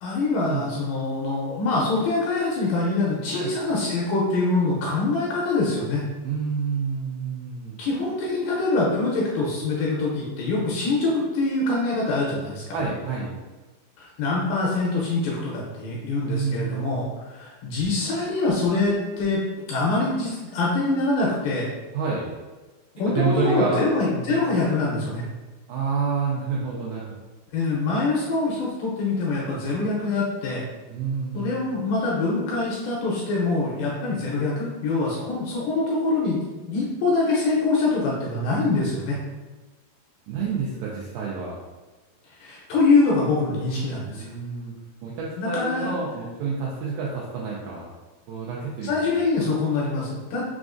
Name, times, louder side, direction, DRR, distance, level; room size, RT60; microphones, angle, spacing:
voice 1, 0.0-6.0 7.8-12.8 14.0-21.7 23.0-25.3 27.5-30.6 31.3-36.4 36.7-39.2 42.4-44.3 45.4-45.9 48.8-50.4, left 3 dB, 80° left, -4 dB, 2.2 m, -24 dB
voice 2, 6.2-7.8 12.7-13.3 16.3-17.1 21.9-22.3 23.1-23.9 24.2-24.4 25.7-27.2 30.9-31.6 40.3-41.6 44.1-44.7 45.0-47.9 48.3-48.9, right 5 dB, 85° right, -5 dB, 2.0 m, -28 dB
6.0 x 2.4 x 2.5 m, 1.2 s
omnidirectional pair, 4.6 m